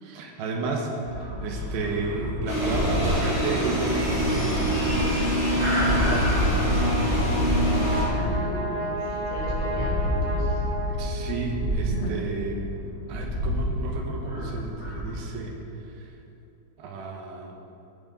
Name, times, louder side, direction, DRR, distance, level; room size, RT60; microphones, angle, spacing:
voice 1, 0.0-5.2 5.5-8.2 9.1-9.2 10.9-15.6 15.9-16.1 16.8-17.6, right 3 dB, 75° right, 1 dB, 2.7 m, -33 dB
sound 1, 1.0-15.3, equal, 15° right, 1.6 m, -30 dB
sound 2, 2.5-8.0, equal, 20° left, 2.2 m, -24 dB
Brass instrument, 7.3-11.7, right 1 dB, 50° right, 1.6 m, -33 dB
voice 2, 8.1-9.0 9.3-10.6 11.9-12.1, left 1 dB, 65° left, -4 dB, 2.6 m, -36 dB
16.5 x 6.2 x 5.2 m, 2.8 s
omnidirectional pair, 5.5 m